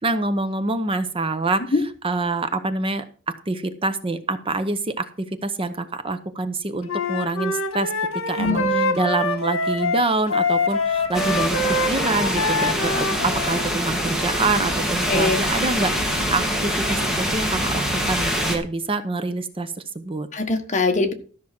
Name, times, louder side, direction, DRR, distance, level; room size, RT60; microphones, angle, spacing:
voice 1, 0.0-1.6 2.0-3.0 3.5-7.9 8.3-11.6 11.9-20.3, right 3 dB, 25° right, 10 dB, 0.8 m, -26 dB
Wind instrument woodwind instrument, 6.9-13.7, left 3 dB, 75° left, 1.6 m, -24 dB
voice 2, 8.4-9.0 15.1-15.4 20.3-21.1, left 3 dB, 35° left, 5 dB, 1.5 m, -22 dB
sound 1, 10.4-17.2, equal, 50° right, 4.4 m, -38 dB
sound 2, 11.1-18.6, equal, 5° right, 2.2 m, -24 dB
13.0 x 6.1 x 5.9 m, 0.41 s
head